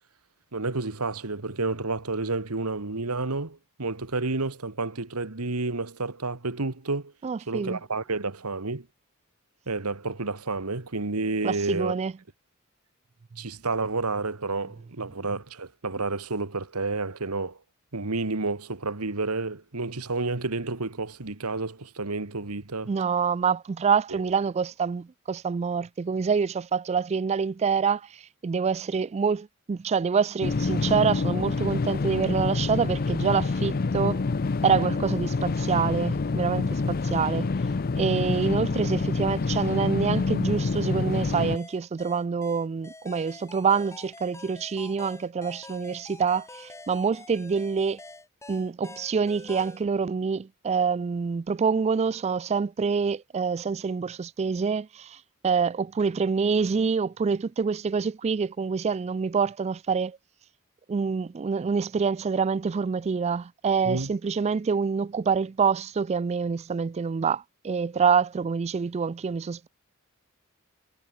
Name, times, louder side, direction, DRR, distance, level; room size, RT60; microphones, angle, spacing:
voice 1, 0.5-7.1 7.5-8.9 9.7-11.9 13.4-17.6 17.9-22.9 24.1-24.2 63.8-64.1, right 3 dB, 85° right, 1.8 m, -30 dB
voice 2, 7.2-7.8 11.4-12.1 22.9-28.0 28.4-34.2 34.6-37.5 38.0-48.0 48.5-55.2 55.4-60.2 60.9-69.7, right 5 dB, 30° right, 0.3 m, -26 dB
sound 1, 30.4-41.6, left 3 dB, 40° left, 0.5 m, -27 dB
sound 2, 41.6-49.8, left 2 dB, 15° left, 4.6 m, -46 dB
head